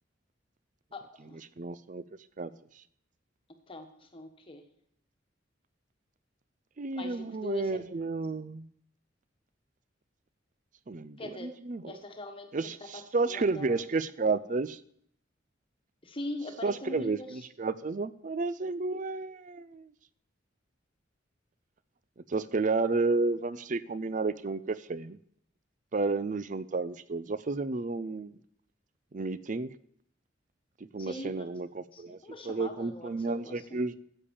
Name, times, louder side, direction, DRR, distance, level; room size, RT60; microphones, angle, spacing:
voice 1, 0.9-1.4 3.7-4.6 6.9-7.8 11.2-11.5 11.8-12.5 12.9-13.0 13.3-13.8 16.0-17.4 31.0-31.5 31.9-33.8, left 1 dB, 30° left, 5 dB, 1.4 m, -42 dB
voice 2, 1.6-2.0 2.4-2.5 6.8-8.7 10.9-11.9 12.5-14.8 16.6-19.9 22.3-25.2 25.9-28.3 29.1-29.7 30.9-32.2 32.4-34.0, right 3 dB, 40° right, 16 dB, 0.5 m, -31 dB
10.0 x 8.6 x 7.1 m, 0.67 s
head